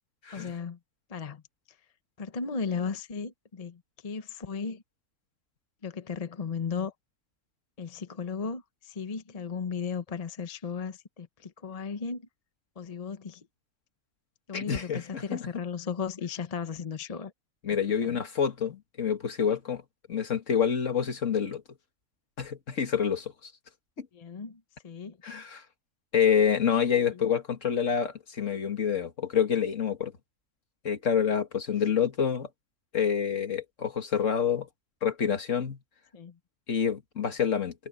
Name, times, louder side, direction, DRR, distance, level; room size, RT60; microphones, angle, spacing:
voice 1, 0.3-0.8 1.1-1.4 2.2-4.8 5.8-6.9 7.8-12.3 12.8-13.5 14.5-17.3 18.0-18.2 24.1-25.2 27.1-27.2 36.1-36.4, left 5 dB, 30° left, 0.8 m, -36 dB
voice 2, 14.5-15.4 17.6-19.8 20.1-21.6 22.4-23.3 24.0-24.1 25.2-25.6 26.1-30.1 30.8-32.5 32.9-34.7 35.0-35.8 36.7-37.7, left 7 dB, 55° left, 2.0 m, -27 dB
omnidirectional pair, 1.6 m